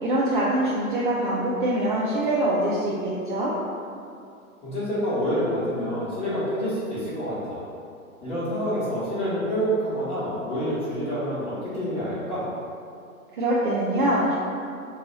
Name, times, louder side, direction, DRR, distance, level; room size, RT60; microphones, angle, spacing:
voice 1, 0.0-3.5 13.3-14.3, right 1 dB, 40° right, -7 dB, 0.4 m, -24 dB
voice 2, 4.6-7.6 8.2-12.5, equal, 15° left, -11 dB, 1.1 m, -27 dB
2.7 x 2.3 x 4.0 m, 2.5 s
hypercardioid pair, 130°, 43 cm